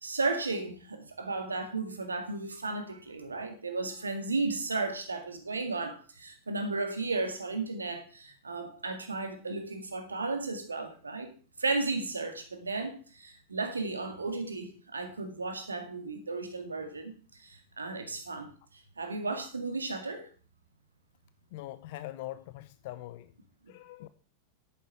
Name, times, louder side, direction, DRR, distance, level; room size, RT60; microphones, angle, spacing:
voice 1, 0.0-11.3 11.6-18.5 19.0-20.3 23.7-23.8, right 3 dB, 75° right, 1.9 m, -34 dB
voice 2, 21.5-23.3 23.7-24.1, left 15 dB, 50° left, 0.5 m, -42 dB
10.5 x 9.3 x 4.7 m
figure-of-eight pair, 90°, 0 cm